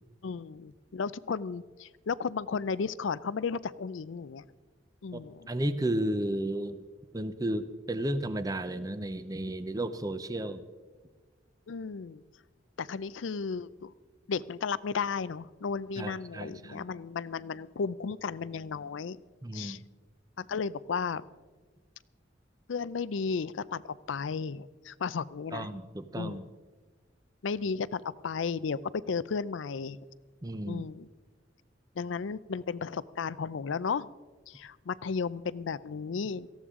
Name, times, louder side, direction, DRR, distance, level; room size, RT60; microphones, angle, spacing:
voice 1, 0.2-4.5 5.0-5.5 11.7-12.2 12.8-13.9 14.3-19.2 19.5-19.8 20.4-21.2 22.7-25.7 26.2-26.4 27.4-30.0 30.7-31.1 32.0-34.1 34.5-36.5, left 5 dB, 85° left, 19 dB, 0.5 m, -34 dB
voice 2, 5.1-6.8 7.1-10.6 16.0-16.8 19.4-19.8 25.5-26.5 30.4-30.9, right 1 dB, 20° right, 12 dB, 0.6 m, -33 dB
18.0 x 14.5 x 3.7 m, 1.4 s
head